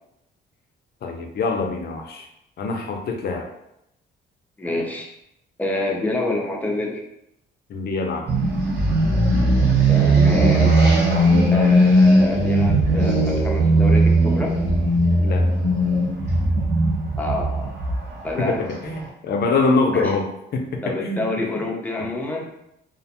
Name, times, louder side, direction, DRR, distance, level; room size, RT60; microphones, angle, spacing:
voice 1, 1.0-2.3 2.6-3.5 7.7-8.2 15.2-15.5 18.4-21.4 22.0-22.1, left 3 dB, 55° left, 3 dB, 0.5 m, -24 dB
voice 2, 4.6-5.1 5.6-7.0 9.9-10.7 11.5-14.5 17.2-17.7 18.2-18.6 19.9-20.1 20.8-22.5, left 2 dB, 10° left, -1 dB, 0.5 m, -27 dB
sound 1, 8.3-19.0, right 1 dB, 60° right, 1.0 m, -18 dB
2.4 x 2.1 x 2.8 m, 0.82 s
cardioid pair, 90°, 20 cm